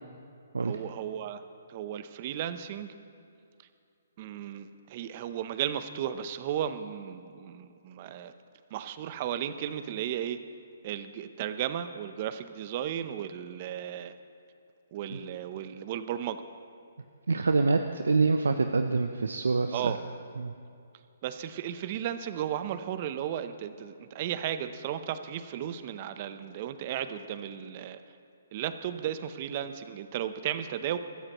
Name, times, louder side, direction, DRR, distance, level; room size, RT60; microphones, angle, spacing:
voice 1, 0.6-1.4 1.7-2.9 4.2-8.3 8.7-10.4 10.8-14.1 14.9-16.4 19.7-20.0 21.2-28.0 28.5-31.0, right 10 dB, 40° right, 11 dB, 0.8 m, -34 dB
voice 2, 17.3-20.0 20.4-20.5, right 4 dB, 85° right, 7 dB, 0.6 m, -26 dB
23.5 x 13.5 x 3.1 m, 2.5 s
hypercardioid pair, 145°, 0 cm